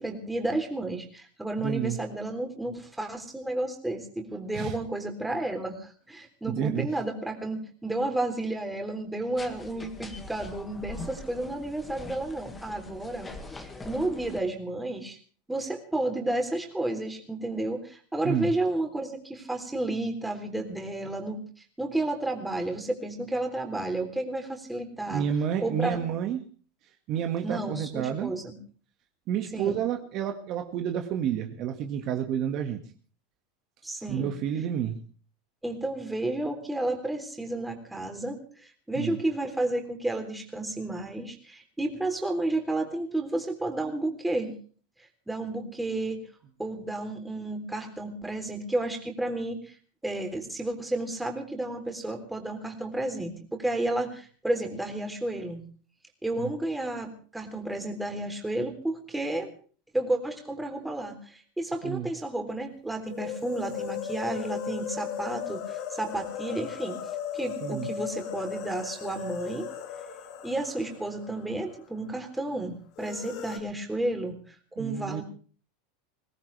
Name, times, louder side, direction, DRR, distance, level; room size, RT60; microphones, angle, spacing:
voice 1, 0.0-15.2 15.5-21.4 21.8-25.3 25.6-26.0 27.4-28.5 29.5-29.8 33.8-34.3 35.6-44.5 45.3-46.2 46.6-49.7 50.0-55.7 56.2-59.5 59.9-67.0 67.3-69.7 70.4-75.2, right 2 dB, 5° right, 3 dB, 3.5 m, -32 dB
voice 2, 1.6-2.0 4.5-4.8 6.5-6.9 18.2-18.5 25.1-26.4 27.1-28.3 29.3-32.8 34.1-35.0 39.0-39.2 56.4-56.5 61.8-62.1 67.6-67.9 74.8-75.2, right 9 dB, 45° right, 5 dB, 2.0 m, -30 dB
sound 1, 9.4-14.4, left 2 dB, 15° left, 2.1 m, -43 dB
sound 2, 63.1-71.9 72.2-72.3 73.0-73.6, left 8 dB, 55° left, 3.3 m, -37 dB
22.5 x 18.0 x 3.5 m, 0.42 s
supercardioid pair, 135°, 0 cm